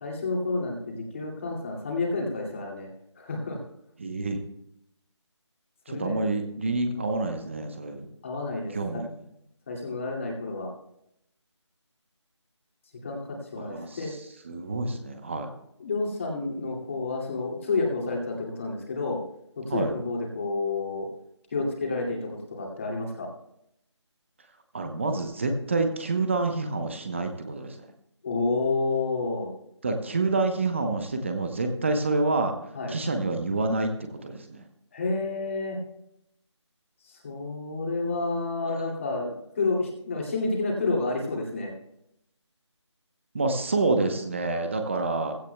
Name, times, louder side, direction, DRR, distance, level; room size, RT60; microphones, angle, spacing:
voice 1, 0.0-2.9 3.2-3.6 5.9-6.2 8.2-9.0 9.7-10.7 13.0-13.2 13.5-14.1 15.8-19.2 19.6-21.1 21.5-23.3 28.2-29.5 32.7-32.9 34.9-35.8 37.1-41.7, left 3 dB, 25° left, -1 dB, 2.4 m, -30 dB
voice 2, 4.0-4.4 5.9-8.1 8.7-9.1 13.6-14.2 14.4-15.5 19.7-19.9 24.7-27.8 29.8-32.5 32.9-34.6 38.6-38.8 43.3-45.4, right 3 dB, 25° right, 5 dB, 0.9 m, -28 dB
16.0 x 15.5 x 2.3 m, 0.77 s
figure-of-eight pair, 165°, 16 cm